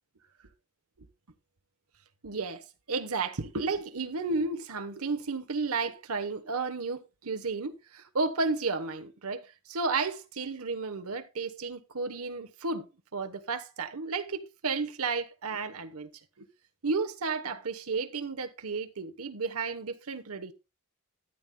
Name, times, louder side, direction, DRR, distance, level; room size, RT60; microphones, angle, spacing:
voice 1, 2.2-12.9 13.1-16.1 16.4-16.5 16.8-20.5, right 4 dB, 80° right, 1.1 m, -33 dB
13.0 x 9.2 x 2.3 m
head